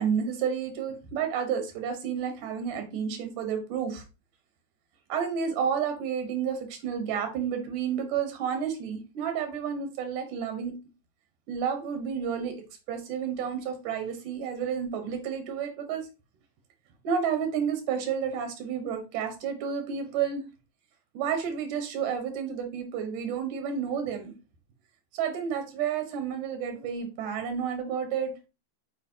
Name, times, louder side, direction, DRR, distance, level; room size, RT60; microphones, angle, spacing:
voice 1, 0.0-4.0 5.1-10.7 11.5-12.5 12.9-16.0 17.0-20.4 21.1-24.3 25.1-28.3, right 7 dB, 90° right, 6 dB, 2.7 m, -30 dB
7.8 x 4.4 x 2.8 m, 0.29 s
omnidirectional pair, 3.5 m